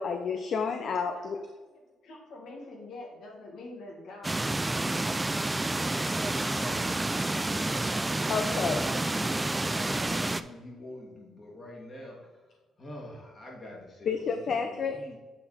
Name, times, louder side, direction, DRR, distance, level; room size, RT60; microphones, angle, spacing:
voice 1, 0.0-1.4 8.3-8.8 14.1-15.0, left 5 dB, 55° left, 6 dB, 0.5 m, -30 dB
voice 2, 1.1-1.7 2.0-7.8, left 2 dB, 75° left, 0 dB, 1.7 m, -47 dB
sound 1, 4.2-10.4, right 2 dB, 15° right, 0.3 m, -29 dB
voice 3, 6.2-12.3 12.8-15.2, left 1 dB, 35° left, -2 dB, 2.2 m, -45 dB
8.2 x 4.2 x 4.1 m, 1.2 s
cardioid pair, 90°, 0 cm